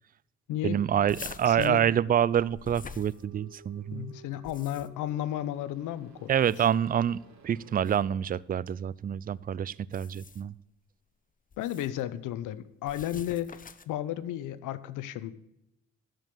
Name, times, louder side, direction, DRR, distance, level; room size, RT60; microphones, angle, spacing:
voice 1, 0.6-4.1 6.3-10.5, right 9 dB, 30° right, 22 dB, 0.4 m, -27 dB
sound 1, 1.1-3.7 4.3-5.1 6.3-6.9 7.8-8.0 9.8-10.6 11.5-12.0 12.8-14.0, left 5 dB, 30° left, 0.7 m, -46 dB
voice 2, 1.5-1.8 3.9-6.3 11.6-15.3, left 12 dB, 85° left, 16 dB, 0.8 m, -33 dB
sound 2, 2.9-7.9, right 5 dB, 65° right, 2.4 m, -55 dB
12.5 x 5.2 x 7.6 m, 0.87 s
cardioid pair, 90°, 30 cm